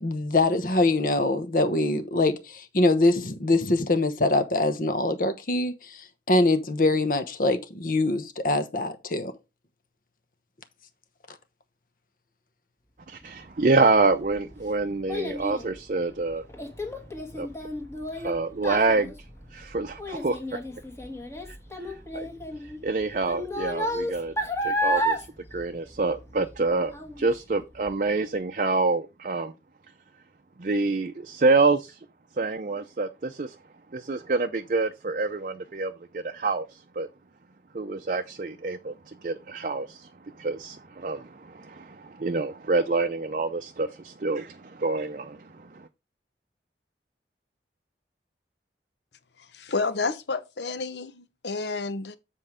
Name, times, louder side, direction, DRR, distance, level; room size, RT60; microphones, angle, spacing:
voice 1, 0.0-5.7 6.3-9.3, left 2 dB, 50° left, 0.9 m, -23 dB
voice 2, 13.1-16.4 17.4-17.5 18.1-19.1 19.5-20.6 22.1-22.3 22.8-24.3 24.6-26.9 27.2-29.5 30.6-32.0 32.4-33.5 33.9-37.1 37.7-38.9 39.2-40.1 40.4-45.9, right 3 dB, 45° right, 0.5 m, -27 dB
Child speech kid speaking, 13.9-26.6 26.9-27.4 27.9-28.0, equal, 15° left, 1.5 m, -32 dB
voice 3, 49.6-52.2, left 3 dB, 80° left, 0.9 m, -30 dB
7.8 x 4.6 x 4.9 m
head